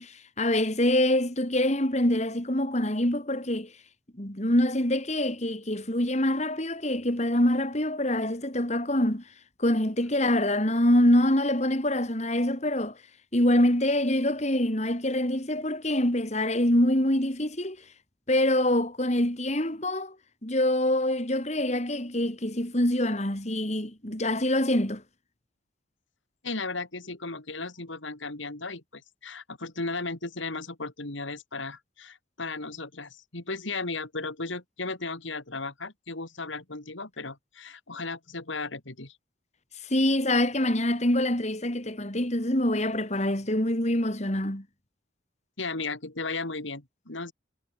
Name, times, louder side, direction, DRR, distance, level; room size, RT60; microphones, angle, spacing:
voice 1, 0.0-3.7 4.2-9.2 9.6-13.0 13.3-17.8 18.3-20.1 20.4-25.0 39.9-44.6, left 1 dB, 35° left, 3.2 m, -25 dB
voice 2, 26.4-39.2 45.6-47.3, left 3 dB, 75° left, 2.9 m, -35 dB
head